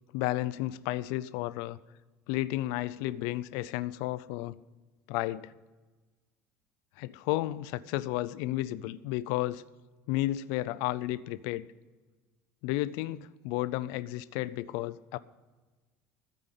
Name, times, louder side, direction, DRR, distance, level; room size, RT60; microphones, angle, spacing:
voice 1, 0.1-1.8 2.3-4.6 5.1-5.5 7.0-9.6 10.1-11.7 12.6-15.2, left 16 dB, 75° left, 16 dB, 0.4 m, -32 dB
13.5 x 5.2 x 9.0 m, 1.2 s
cardioid pair, 175°, 6 cm